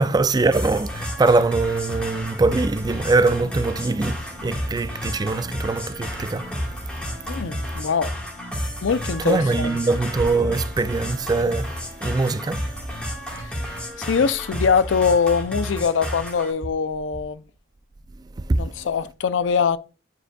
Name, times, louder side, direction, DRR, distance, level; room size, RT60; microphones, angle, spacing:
voice 1, 0.0-7.7 9.2-14.0 18.2-18.9, right 3 dB, 20° right, 0.3 m, -23 dB
sound 1, 0.5-16.5, equal, 5° left, 1.5 m, -31 dB
sound 2, 3.3-12.3, equal, 50° right, 1.2 m, -48 dB
voice 2, 7.3-8.1 8.8-9.8 13.4-13.6 14.0-17.4 18.6-19.8, left 6 dB, 70° left, 0.4 m, -22 dB
9.0 x 4.9 x 2.2 m
head